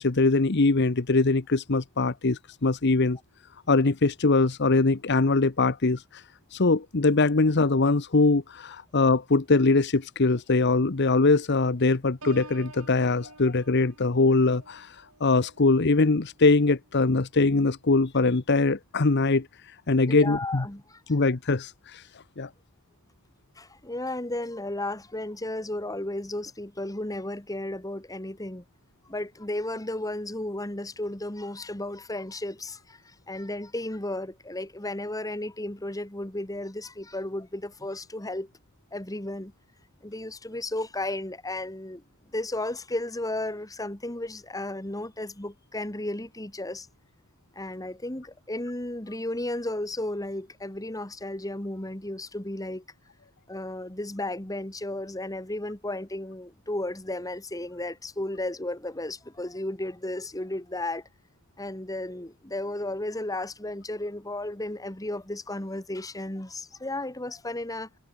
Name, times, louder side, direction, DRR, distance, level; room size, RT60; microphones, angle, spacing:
voice 1, 0.0-3.2 3.7-6.2 6.5-19.5 19.9-20.6 21.1-22.0 22.4-22.5, left 3 dB, 50° left, 0.9 m, -22 dB
Piano, 12.2-17.8 18.3-18.7, right 3 dB, 90° right, 6.1 m, -50 dB
voice 2, 20.1-21.2 23.6-28.6 29.1-38.5 38.9-39.5 40.0-42.0 42.3-46.9 47.6-52.8 53.5-61.1 61.6-67.9, left 1 dB, 15° left, 1.8 m, -34 dB
head